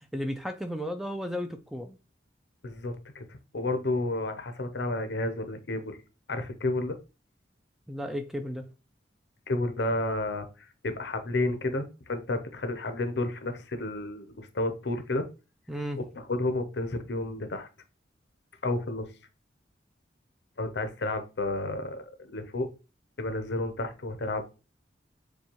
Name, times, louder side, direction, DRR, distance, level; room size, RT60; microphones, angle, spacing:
voice 1, 0.1-2.0 7.9-8.6 15.7-16.0, equal, ahead, 6 dB, 0.3 m, -34 dB
voice 2, 2.6-3.2 3.5-6.0 6.3-7.0 9.5-10.5 10.8-15.3 16.1-17.7 18.6-19.1 20.6-22.7 23.2-24.4, left 2 dB, 70° left, 8 dB, 0.7 m, -31 dB
6.8 x 2.3 x 2.9 m, 0.31 s
head